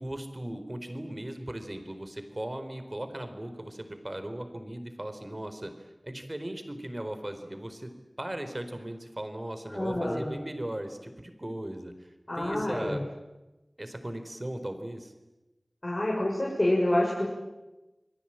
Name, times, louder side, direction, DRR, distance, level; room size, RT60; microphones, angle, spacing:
voice 1, 0.0-7.9 8.2-13.0 13.8-15.1, right 1 dB, 35° right, 8 dB, 4.3 m, -38 dB
voice 2, 9.7-10.3 12.3-13.0 15.8-17.2, left 1 dB, 45° left, -3 dB, 6.9 m, -27 dB
29.0 x 21.5 x 9.1 m, 1.0 s
wide cardioid pair, 45°, 0 cm